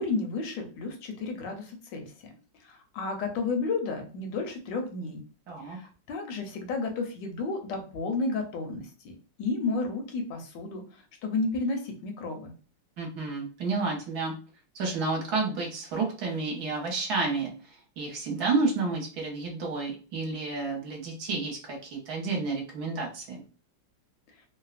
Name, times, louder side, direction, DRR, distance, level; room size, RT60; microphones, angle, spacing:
voice 1, 0.0-2.3 2.6-5.2 5.7-10.8 11.2-12.5, left 3 dB, 85° left, 4 dB, 1.3 m, -32 dB
voice 2, 5.5-5.8 13.0-14.3 14.7-17.5 18.0-23.4, right 3 dB, 65° right, 0 dB, 1.2 m, -30 dB
3.2 x 2.0 x 2.4 m, 0.37 s
omnidirectional pair, 1.9 m